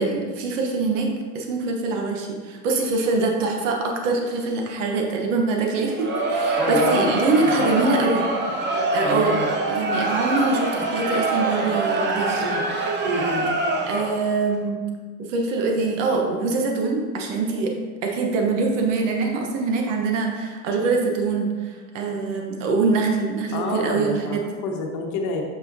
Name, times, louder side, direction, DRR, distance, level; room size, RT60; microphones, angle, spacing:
voice 1, 0.0-8.3 8.9-9.4 9.7-12.4 13.9-14.8 15.2-17.7 18.0-24.4, right 3 dB, 85° right, 1 dB, 1.0 m, -24 dB
Crowd, 5.8-14.3, right 2 dB, 30° right, 0.7 m, -24 dB
voice 2, 6.6-7.1 7.4-7.5 9.0-9.5 12.4-12.6 13.1-13.5 23.5-25.4, left 3 dB, 50° left, 1 dB, 1.2 m, -28 dB
6.7 x 5.8 x 2.7 m, 1.5 s
supercardioid pair, 125°, 36 cm